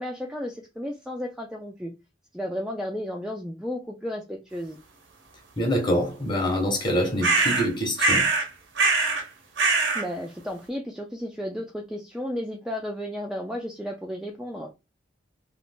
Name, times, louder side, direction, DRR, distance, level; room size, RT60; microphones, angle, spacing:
voice 1, 0.0-1.9 2.3-4.8 9.9-14.7, equal, 5° right, 0.3 m, -33 dB
voice 2, 5.6-8.3, equal, 25° left, 1.0 m, -25 dB
sound 1, 7.2-7.7 8.0-8.5 8.8-9.2 9.6-10.0, right 3 dB, 80° right, 0.8 m, -22 dB
2.5 x 2.4 x 3.5 m
head